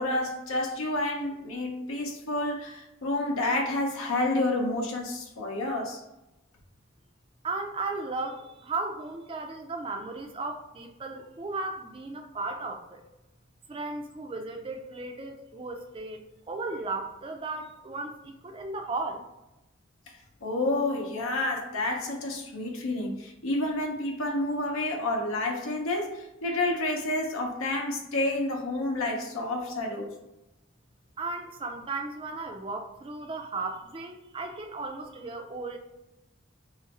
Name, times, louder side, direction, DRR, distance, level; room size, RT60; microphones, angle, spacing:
voice 1, 0.0-6.0 20.4-30.1, left 2 dB, 90° left, 0.7 m, -29 dB
voice 2, 7.4-13.0 13.7-16.2 16.5-19.2 31.2-35.8, right 3 dB, 25° right, 0.3 m, -35 dB
3.0 x 2.5 x 4.1 m
head